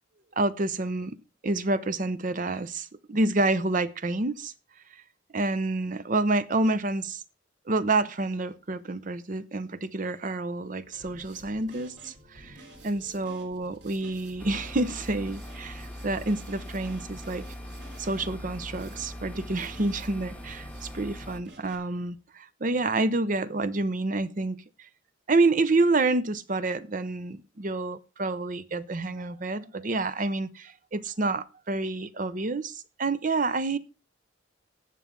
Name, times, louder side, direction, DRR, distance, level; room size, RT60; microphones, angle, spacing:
voice 1, 0.4-1.2 1.4-4.5 5.3-7.2 7.7-17.4 18.0-24.6 25.3-33.8, right 2 dB, 40° right, 0.7 m, -28 dB
Drum kit, 10.9-21.7, right 1 dB, 60° right, 3.8 m, -50 dB
sound 1, 14.4-21.4, equal, 5° left, 1.0 m, -41 dB
18.5 x 7.1 x 3.7 m
head